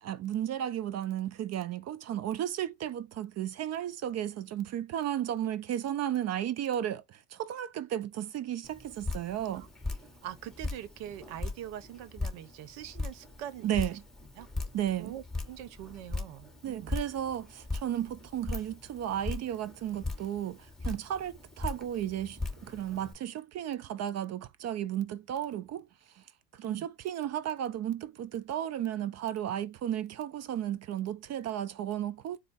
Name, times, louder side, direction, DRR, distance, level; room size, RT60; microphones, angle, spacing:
voice 1, 0.0-9.7 13.6-14.0 14.7-15.1 16.6-26.2 26.5-32.4, right 11 dB, 40° right, 0.5 m, -34 dB
Drip, 8.6-23.1, left 3 dB, ahead, 1.4 m, -39 dB
voice 2, 10.2-14.0 14.4-14.5 15.0-17.0 26.6-26.9, right 11 dB, 75° right, 0.9 m, -43 dB
4.5 x 2.1 x 4.0 m
supercardioid pair, 100°, 41 cm